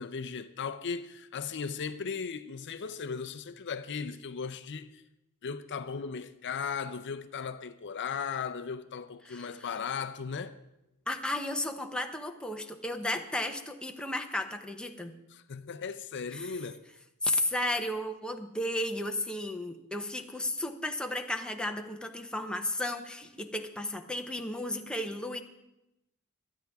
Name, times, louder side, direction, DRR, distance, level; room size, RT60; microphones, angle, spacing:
voice 1, 0.0-5.0 5.4-10.6 15.3-16.8, left 6 dB, 55° left, 0.6 m, -37 dB
voice 2, 11.1-15.1 16.3-16.5 17.2-25.4, left 1 dB, 5° left, 0.8 m, -33 dB
24.0 x 9.3 x 3.5 m
head